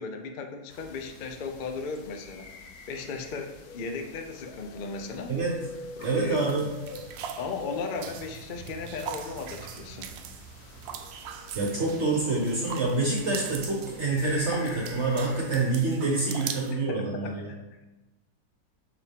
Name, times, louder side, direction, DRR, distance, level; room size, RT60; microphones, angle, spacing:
voice 1, 0.0-2.5 2.9-5.4 6.0-6.5 7.4-10.1 16.7-17.6, left 4 dB, 85° left, 4 dB, 0.4 m, -36 dB
sound 1, 0.7-15.6, left 4 dB, 65° left, 1.1 m, -45 dB
voice 2, 6.0-6.6 11.5-17.5, right 3 dB, 45° right, -2 dB, 1.3 m, -27 dB
sound 2, 6.0-16.7, right 8 dB, 90° right, 1.3 m, -42 dB
6.8 x 5.2 x 3.6 m, 1.0 s
omnidirectional pair, 1.9 m